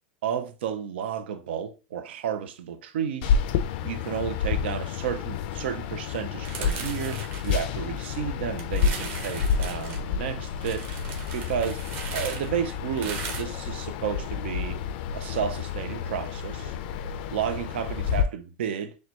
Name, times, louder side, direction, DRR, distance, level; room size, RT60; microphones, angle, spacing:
voice 1, 0.2-3.3 3.8-10.9 11.3-11.8 12.1-14.8 15.1-16.7 17.3-19.0, right 8 dB, 80° right, 0.6 m, -32 dB
sound 1, 3.2-18.2, left 7 dB, 55° left, 0.4 m, -30 dB
sound 2, 6.4-8.2 8.6-10.0 10.6-13.4, right 5 dB, 35° right, 1.0 m, -38 dB
6.4 x 2.3 x 2.9 m
supercardioid pair, 150°, 6 cm